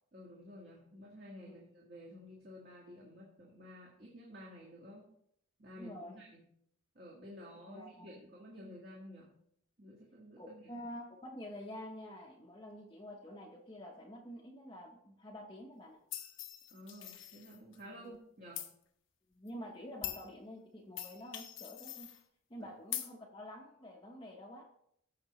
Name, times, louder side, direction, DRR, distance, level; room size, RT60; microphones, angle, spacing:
voice 1, 0.1-5.1 5.6-6.4 6.9-9.3 9.8-10.8 16.7-18.7 22.6-22.7, equal, 45° right, -4 dB, 1.7 m, -52 dB
voice 2, 5.7-6.2 7.7-8.2 10.4-16.0 18.0-18.1 19.4-22.1 22.5-24.7, equal, 20° left, -2 dB, 0.8 m, -48 dB
sound 1, 16.1-17.8 18.6-18.7 19.5-19.6 20.0-20.3 21.0-22.2 22.9-23.1, left 11 dB, 65° left, 0.9 m, -43 dB
14.5 x 5.8 x 3.1 m, 0.71 s
head